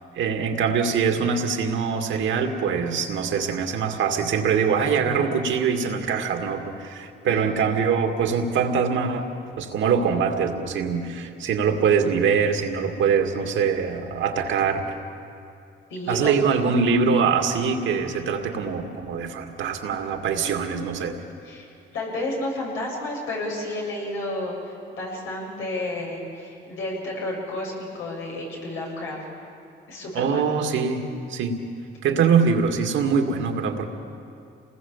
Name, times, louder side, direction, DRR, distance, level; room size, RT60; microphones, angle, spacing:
voice 1, 0.1-9.3 9.6-14.8 16.1-21.2 30.1-31.0 31.3-31.6 32.0-33.9, right 6 dB, 80° right, 4 dB, 2.3 m, -23 dB
voice 2, 15.9-16.3 21.4-29.2 29.9-30.4, left 1 dB, 90° left, -2 dB, 7.4 m, -31 dB
28.5 x 20.0 x 7.4 m, 2.5 s
cardioid pair, 90°, 20 cm